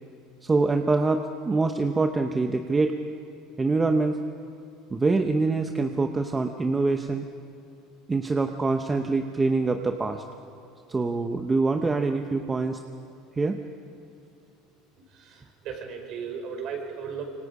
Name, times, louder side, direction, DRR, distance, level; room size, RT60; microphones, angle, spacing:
voice 1, 0.4-3.0 3.6-4.2 4.9-7.3 8.1-10.2 10.9-12.8 13.4-13.6, right 3 dB, 15° right, 5 dB, 0.8 m, -25 dB
voice 2, 15.1-17.2, right 6 dB, 45° right, 3 dB, 4.5 m, -36 dB
26.0 x 24.5 x 4.9 m, 2.7 s
cardioid pair, 160°, 0 cm